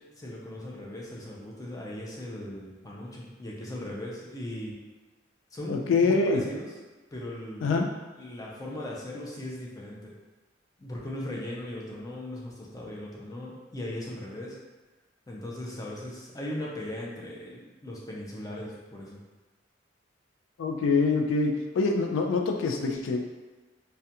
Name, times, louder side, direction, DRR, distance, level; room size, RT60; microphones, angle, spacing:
voice 1, 0.0-4.8 5.5-6.7 7.1-7.7 8.2-10.2 10.8-14.6 15.3-19.2, left 1 dB, 20° left, -3 dB, 0.4 m, -38 dB
voice 2, 5.7-6.4 7.6-7.9 20.6-23.2, left 4 dB, 90° left, 3 dB, 0.3 m, -25 dB
2.3 x 2.2 x 2.7 m, 1.2 s
head